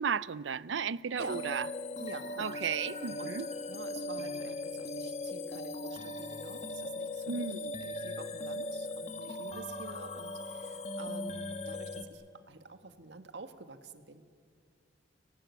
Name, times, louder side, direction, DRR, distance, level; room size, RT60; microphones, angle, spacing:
voice 1, 0.0-1.7 2.4-3.5 7.2-7.7, right 6 dB, 85° right, 0.6 m, -34 dB
sound 1, 1.2-12.0, left 2 dB, 40° left, 1.5 m, -39 dB
voice 2, 2.0-2.5 3.2-3.4 3.7-7.4 7.8-14.2, right 3 dB, 70° right, 1.7 m, -48 dB
29.5 x 18.0 x 9.6 m
head